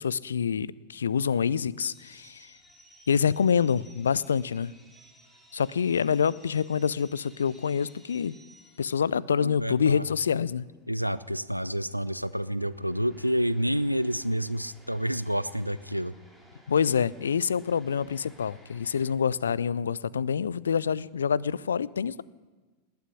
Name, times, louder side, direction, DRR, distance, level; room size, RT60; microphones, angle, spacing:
voice 1, 0.0-2.5 3.1-4.7 5.5-8.3 8.8-10.7 16.7-22.2, left 7 dB, 70° left, 22 dB, 0.4 m, -26 dB
sound 1, 1.8-19.1, equal, ahead, 2.7 m, -58 dB
voice 2, 9.1-10.0 10.9-16.1, equal, 90° right, 16 dB, 0.5 m, -29 dB
19.5 x 7.0 x 9.9 m, 1.3 s
figure-of-eight pair, 90°, 0 cm